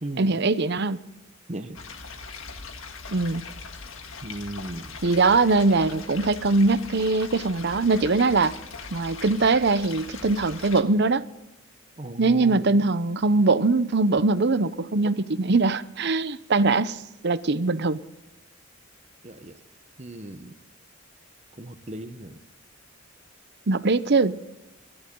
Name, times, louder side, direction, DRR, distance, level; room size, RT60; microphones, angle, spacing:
voice 1, 0.2-1.0 3.1-3.4 5.0-8.5 8.9-11.2 12.2-17.0 17.2-18.0 23.7-24.4, right 3 dB, 55° right, 14 dB, 0.7 m, -22 dB
sound 1, 1.7-10.8, left 4 dB, 75° left, 1.7 m, -40 dB
voice 2, 4.2-4.9 12.0-12.6 19.2-19.5 20.0-20.5 21.6-22.4, right 1 dB, 35° right, 9 dB, 1.1 m, -36 dB
28.5 x 11.5 x 3.8 m, 0.95 s
head